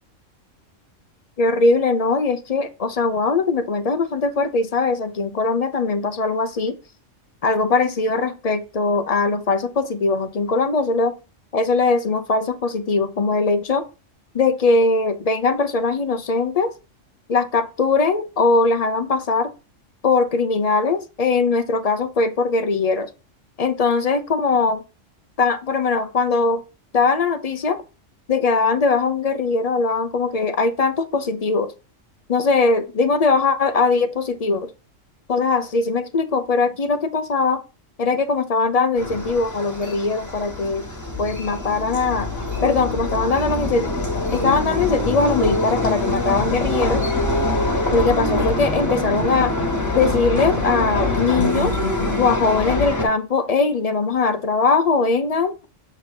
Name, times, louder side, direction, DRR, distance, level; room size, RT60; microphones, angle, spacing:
voice 1, 1.4-6.7 7.4-11.1 11.5-13.9 14.3-16.7 17.3-19.5 20.0-23.1 23.6-24.8 25.4-26.6 26.9-27.8 28.3-31.7 32.3-34.7 35.3-37.6 38.0-40.9 41.2-42.3 42.6-43.9 44.3-47.0 47.9-49.5 49.9-51.8 52.2-55.5, left 4 dB, 45° left, 0.5 m, -20 dB
sound 1, 39.0-53.0, left 2 dB, 15° left, 1.4 m, -24 dB
7.3 x 2.8 x 5.1 m
omnidirectional pair, 1.3 m